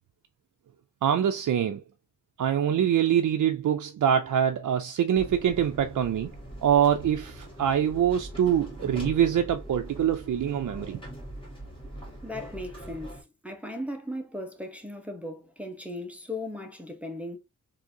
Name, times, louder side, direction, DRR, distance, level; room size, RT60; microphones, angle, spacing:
voice 1, 1.0-1.8 2.4-6.3 6.6-11.0, right 9 dB, 70° right, 0.5 m, -24 dB
sound 1, 5.1-13.2, right 1 dB, 15° left, 2.0 m, -41 dB
voice 2, 12.2-17.4, left 1 dB, 5° right, 0.9 m, -37 dB
3.7 x 2.7 x 2.7 m
wide cardioid pair, 85°, 31 cm